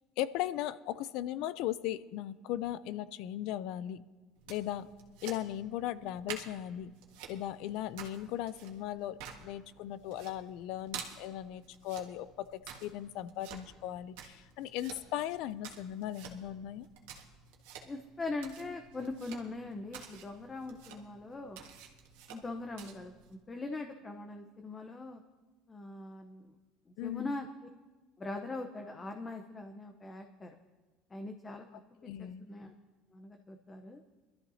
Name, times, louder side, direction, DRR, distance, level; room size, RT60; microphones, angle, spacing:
voice 1, 0.2-4.0 4.5-4.9 5.2-6.9 7.3-16.9 27.0-27.4 32.0-32.5, left 12 dB, 70° left, 16 dB, 0.5 m, -38 dB
sound 1, 4.4-23.3, right 7 dB, 85° right, 1.7 m, -50 dB
voice 2, 17.8-21.7 22.3-25.2 25.7-26.5 26.9-27.5 28.2-30.6 31.1-31.7 32.0-32.7 33.1-34.0, left 2 dB, 20° left, 5 dB, 0.8 m, -41 dB
22.0 x 13.0 x 2.8 m, 1.3 s
supercardioid pair, 115°, 0 cm